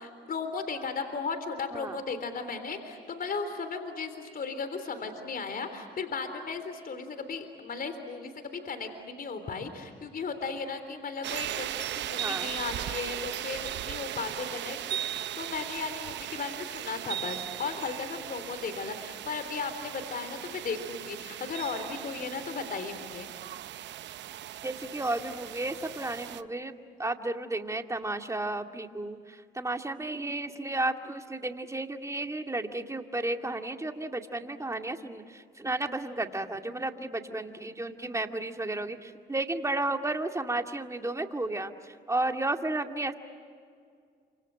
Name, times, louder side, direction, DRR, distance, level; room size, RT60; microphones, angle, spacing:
voice 1, 0.0-14.8 15.4-23.3, left 4 dB, 50° left, 8 dB, 3.6 m, -36 dB
sound 1, 11.2-26.4, right 12 dB, 75° right, 0.8 m, -38 dB
voice 2, 24.6-43.1, right 2 dB, 15° right, 5 dB, 2.2 m, -33 dB
28.5 x 26.0 x 7.6 m, 2.2 s
supercardioid pair, 65°, 19 cm